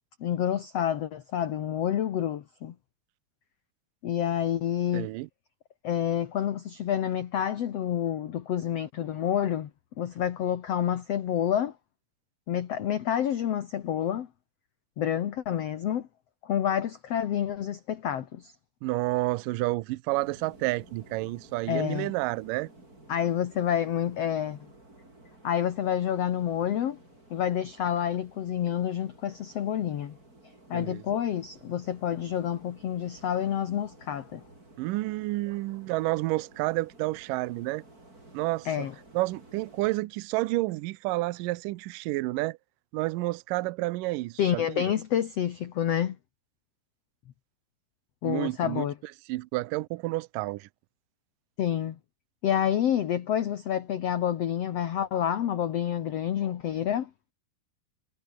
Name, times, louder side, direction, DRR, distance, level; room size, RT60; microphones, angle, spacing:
voice 1, 0.2-2.7 4.0-5.1 5.8-9.7 10.0-11.7 12.5-14.3 15.0-16.1 16.4-18.5 21.7-22.1 23.1-24.6 25.4-27.0 27.3-30.1 30.7-34.4 38.6-38.9 44.4-46.2 48.2-48.9 51.6-52.0 52.4-57.1, left 10 dB, 60° left, 1.7 m, -28 dB
voice 2, 4.9-5.3 18.8-22.7 30.7-31.0 34.8-37.8 38.3-38.9 39.1-42.6 42.9-44.9 48.2-48.9 49.3-50.7, right 20 dB, 85° right, 2.0 m, -30 dB
sound 1, 20.1-40.0, right 2 dB, 20° right, 7.3 m, -54 dB
omnidirectional pair, 4.6 m